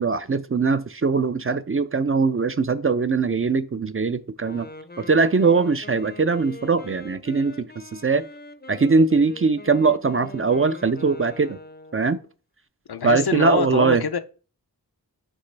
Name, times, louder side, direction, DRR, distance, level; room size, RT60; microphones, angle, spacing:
voice 1, 0.0-4.7 5.0-8.3 8.7-11.6 11.9-12.2 13.0-14.0, right 4 dB, 35° right, 0.4 m, -21 dB
Wind instrument woodwind instrument, 4.4-12.3, left 2 dB, 25° left, 0.5 m, -42 dB
voice 2, 12.9-14.2, left 7 dB, 75° left, 0.5 m, -25 dB
9.7 x 3.2 x 3.3 m
wide cardioid pair, 40°, 38 cm